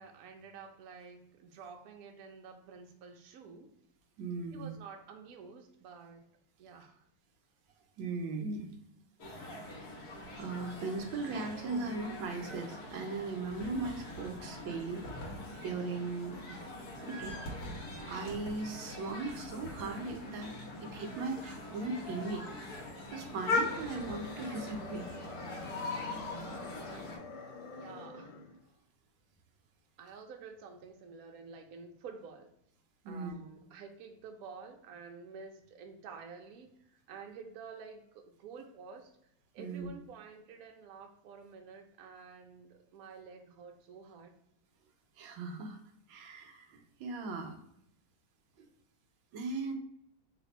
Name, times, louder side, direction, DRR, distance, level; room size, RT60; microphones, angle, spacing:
voice 1, 0.0-3.7 4.5-6.2 6.6-7.0 27.7-28.3 30.0-32.5 33.1-39.1 39.5-44.3, right 5 dB, 90° right, 3 dB, 0.7 m, -50 dB
voice 2, 4.2-4.7 8.0-8.8 9.4-9.6 10.4-15.1 15.6-16.6 17.0-17.4 18.1-20.5 20.8-22.5 23.1-25.1 33.0-33.3 39.6-39.9 45.2-45.8 46.1-47.6 48.6-48.7 49.3-49.7, right 3 dB, 70° right, 4 dB, 1.3 m, -38 dB
sound 1, 9.2-27.2, left 2 dB, 55° left, 1.3 m, -41 dB
sound 2, 23.3-28.6, left 3 dB, 85° left, 1.6 m, -47 dB
3.5 x 2.5 x 4.0 m, 0.75 s
omnidirectional pair, 2.3 m